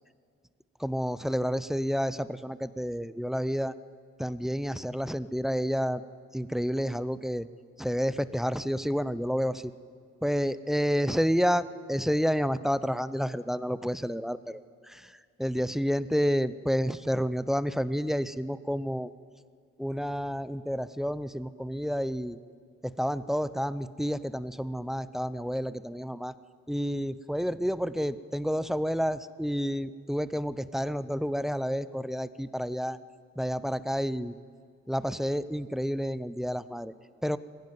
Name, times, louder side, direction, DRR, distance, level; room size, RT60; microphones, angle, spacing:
voice 1, 0.8-3.7 4.2-6.0 6.3-7.5 7.8-9.7 10.2-11.6 11.9-14.6 14.9-19.1 19.8-22.4 22.8-26.3 26.7-33.0 33.4-34.4 34.9-36.9 37.2-37.4, equal, ahead, 14 dB, 0.6 m, -30 dB
21.0 x 16.0 x 9.4 m, 2.1 s
cardioid pair, 90°, 30 cm